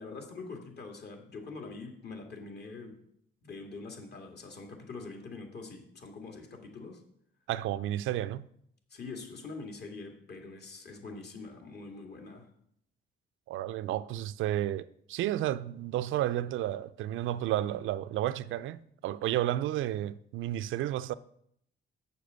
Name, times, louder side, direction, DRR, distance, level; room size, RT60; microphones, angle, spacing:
voice 1, 0.0-2.9 3.4-7.0 8.9-12.5, left 3 dB, 55° left, 2.3 m, -44 dB
voice 2, 7.5-8.4 13.5-21.1, right 13 dB, 80° right, 0.5 m, -32 dB
7.6 x 6.9 x 6.4 m
cardioid pair, 90°, 20 cm